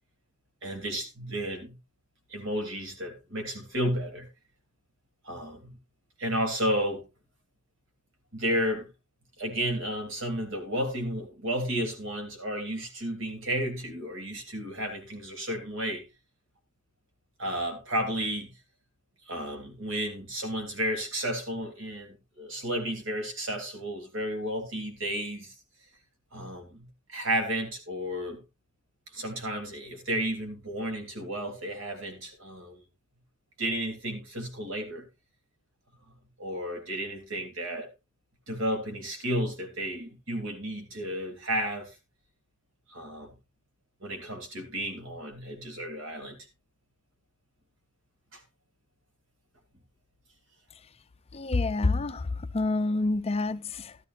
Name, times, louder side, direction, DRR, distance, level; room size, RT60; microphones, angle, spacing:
voice 1, 0.6-1.7 2.3-4.3 5.2-5.7 6.2-7.1 8.3-8.9 9.4-16.0 17.4-18.5 19.3-25.5 26.3-28.4 29.1-32.8 33.6-35.0 36.4-37.9 38.5-41.9 42.9-43.3 44.0-46.4 48.3-48.4, equal, 65° right, 3.0 m, -32 dB
voice 2, 51.3-54.0, left 3 dB, 30° left, 0.5 m, -28 dB
12.5 x 12.5 x 2.5 m
head